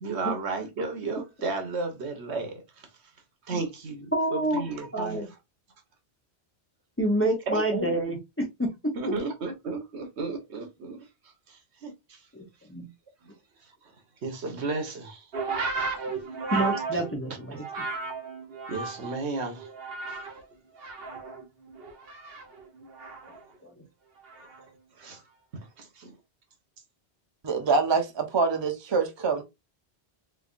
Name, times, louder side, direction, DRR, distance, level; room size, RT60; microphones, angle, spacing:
voice 1, 0.0-2.6 3.5-5.3 7.5-7.9 8.9-11.0 11.5-12.2 14.2-15.3 16.5-16.6 18.7-19.7 20.1-20.2 24.4-24.5 25.0-25.2 25.8-26.1, right 3 dB, 80° right, 1.3 m, -33 dB
voice 2, 4.1-4.6 4.9-5.3 7.0-8.7 12.7-12.9 16.5-17.6, right 1 dB, 15° left, 0.7 m, -27 dB
sound 1, 15.3-19.2 19.6-20.4 20.8-23.4 24.3-24.6, right 4 dB, 60° right, 1.1 m, -34 dB
voice 3, 27.4-29.4, right 4 dB, 30° right, 0.5 m, -25 dB
3.4 x 3.3 x 2.4 m
omnidirectional pair, 1.1 m